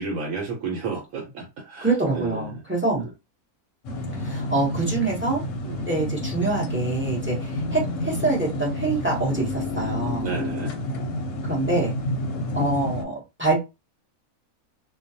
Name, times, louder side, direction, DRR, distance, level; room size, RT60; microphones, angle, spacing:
voice 1, 0.0-1.9 2.1-2.5 2.9-3.0 5.6-5.9 10.2-10.7, right 4 dB, 70° right, 1.0 m, -31 dB
voice 2, 1.8-3.0 4.1-5.4 5.9-10.3 11.4-11.9 12.5-13.6, right 3 dB, 15° right, 0.5 m, -25 dB
sound 1, 3.8-13.0, left 1 dB, 65° left, 0.8 m, -29 dB
2.3 x 2.2 x 2.6 m
omnidirectional pair, 1.6 m